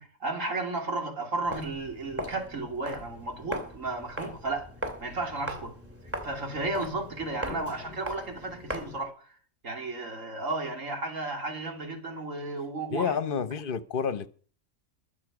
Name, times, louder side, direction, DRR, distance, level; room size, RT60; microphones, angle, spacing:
voice 1, 0.0-4.7 5.0-5.7 6.2-9.3 9.6-13.2, right 2 dB, 85° right, 3.2 m, -33 dB
Walk footsteps, 1.4-9.1, equal, 10° right, 2.9 m, -39 dB
voice 2, 12.9-14.3, left 6 dB, 45° left, 1.0 m, -30 dB
22.5 x 7.5 x 4.9 m
omnidirectional pair, 1.3 m